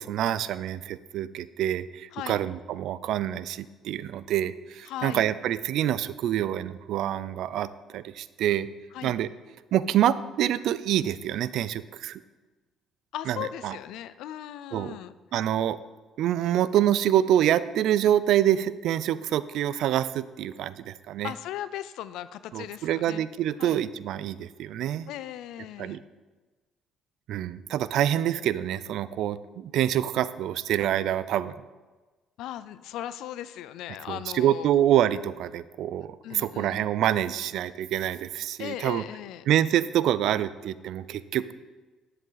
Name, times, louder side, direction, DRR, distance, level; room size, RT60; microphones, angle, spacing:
voice 1, 0.0-8.7 9.0-9.3 9.7-12.2 13.3-13.8 14.7-15.0 15.3-15.8 16.2-21.3 22.5-25.1 25.8-26.0 27.3-31.6 34.1-39.0 39.5-41.5, right 11 dB, 70° right, 16 dB, 0.4 m, -26 dB
voice 2, 4.9-5.3 8.9-9.1 13.1-15.1 21.2-23.3 23.6-23.8 25.1-26.0 32.4-34.7 36.2-36.8 38.6-39.4, left 12 dB, 80° left, 15 dB, 0.4 m, -37 dB
10.0 x 7.8 x 4.0 m, 1.3 s
cardioid pair, 105°, 0 cm